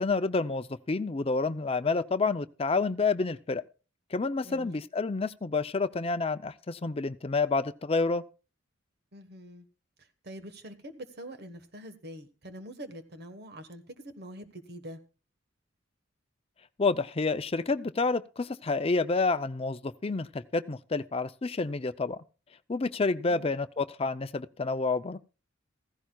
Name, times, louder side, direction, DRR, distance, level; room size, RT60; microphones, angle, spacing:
voice 1, 0.0-3.6 4.1-8.2 16.8-22.2 22.7-25.2, left 3 dB, 30° left, 0.5 m, -29 dB
voice 2, 4.4-4.8 9.1-9.6 10.0-15.0 23.2-23.5, equal, 55° right, 1.4 m, -45 dB
16.0 x 15.0 x 2.3 m
head